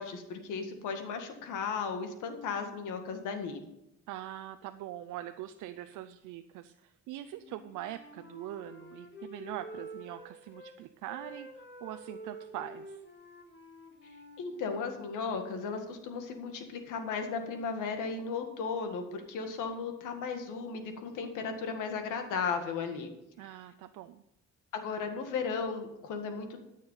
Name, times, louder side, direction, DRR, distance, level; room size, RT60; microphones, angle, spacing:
voice 1, 0.0-3.6 14.4-23.1 24.7-26.6, left 5 dB, 90° left, 6 dB, 1.8 m, -35 dB
voice 2, 4.1-13.0 23.4-24.2, right 13 dB, 90° right, 10 dB, 0.5 m, -43 dB
Wind instrument woodwind instrument, 7.4-10.7 11.0-14.9, right 1 dB, 40° left, 2.0 m, -48 dB
13.0 x 6.5 x 5.6 m, 0.87 s
cardioid pair, 90°, 30 cm